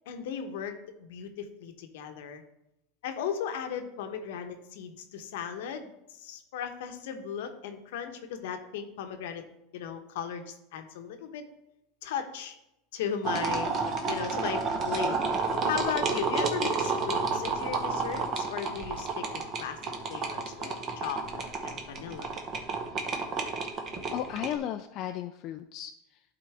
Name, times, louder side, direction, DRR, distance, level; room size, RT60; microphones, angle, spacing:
voice 1, 0.1-0.7 1.0-2.4 3.0-9.4 9.7-11.4 12.0-12.5 12.9-13.7 14.1-15.2 15.6-19.8 20.1-22.3, left 7 dB, 75° left, 7 dB, 0.9 m, -36 dB
sound 1, 13.2-24.5, right 4 dB, 40° right, 1.1 m, -31 dB
voice 2, 24.1-26.2, left 10 dB, 50° left, 6 dB, 0.4 m, -35 dB
11.5 x 3.8 x 3.4 m, 0.86 s
supercardioid pair, 115°, 0 cm